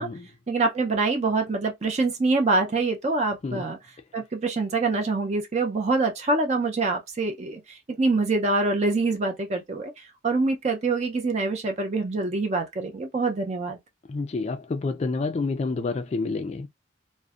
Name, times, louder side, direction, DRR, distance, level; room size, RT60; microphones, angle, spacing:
voice 1, 0.5-3.8 4.1-7.6 8.0-9.9 10.2-13.8, right 3 dB, 40° right, 0.5 m, -25 dB
voice 2, 14.1-16.7, left 3 dB, 35° left, 0.3 m, -28 dB
2.5 x 2.1 x 2.3 m
head